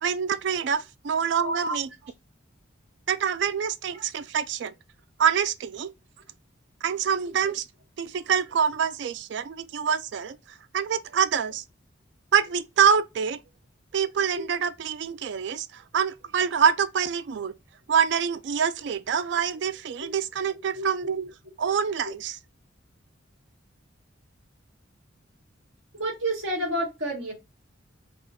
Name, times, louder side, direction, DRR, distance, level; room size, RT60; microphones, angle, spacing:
voice 1, 0.0-1.9 3.1-4.7 5.2-5.9 6.8-7.6 8.0-10.4 10.7-11.6 12.3-13.4 13.9-17.5 17.9-21.3 21.6-22.4, right 7 dB, 60° right, 0.3 m, -25 dB
voice 2, 1.4-1.8 7.4-7.5 14.3-14.4 20.0-20.1 20.7-20.9 25.9-27.3, right 1 dB, 90° right, 1.9 m, -29 dB
4.3 x 2.3 x 3.4 m
head